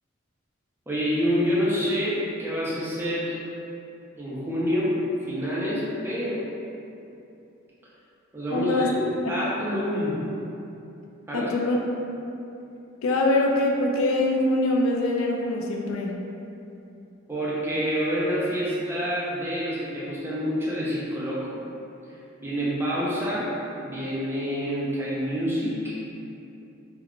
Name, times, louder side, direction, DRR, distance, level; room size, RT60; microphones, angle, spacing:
voice 1, 0.9-3.4 4.2-5.0 5.3-6.5 8.3-10.2 11.3-11.5 17.3-21.6 22.1-26.0, equal, 10° right, -8 dB, 0.5 m, -27 dB
voice 2, 8.5-8.9 11.3-11.8 13.0-16.1, left 2 dB, 85° left, 0 dB, 0.4 m, -23 dB
2.2 x 2.2 x 3.6 m, 2.8 s
head